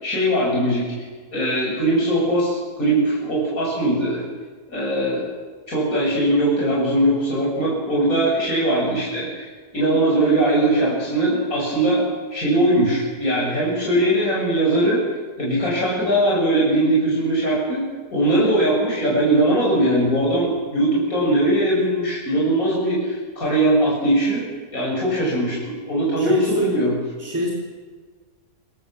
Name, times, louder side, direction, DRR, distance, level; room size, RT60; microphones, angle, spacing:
voice 1, 0.0-4.2 4.7-5.2 5.7-12.0 12.3-15.0 15.4-17.8 18.1-24.4 24.7-27.0, right 1 dB, 60° left, -4 dB, 6.2 m, -20 dB
voice 2, 26.2-26.7 27.2-27.5, right 1 dB, 10° right, -3 dB, 3.5 m, -25 dB
26.5 x 16.5 x 7.2 m, 1.5 s
omnidirectional pair, 1.7 m